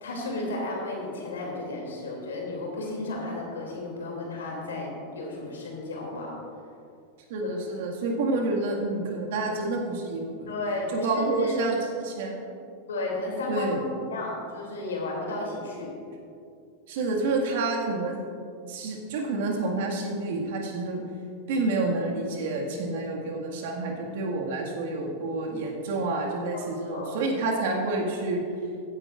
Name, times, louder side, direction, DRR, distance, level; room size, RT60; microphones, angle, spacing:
voice 1, 0.0-6.4 10.5-11.5 12.9-15.9 26.5-26.6 26.9-27.1, left 2 dB, 80° left, -1 dB, 2.7 m, -33 dB
voice 2, 7.3-10.5 10.9-12.4 13.5-13.8 16.9-18.2 18.7-21.0 21.5-28.4, right 2 dB, 60° right, 0 dB, 1.9 m, -29 dB
15.5 x 9.8 x 2.5 m, 2.5 s
hypercardioid pair, 95°, 0 cm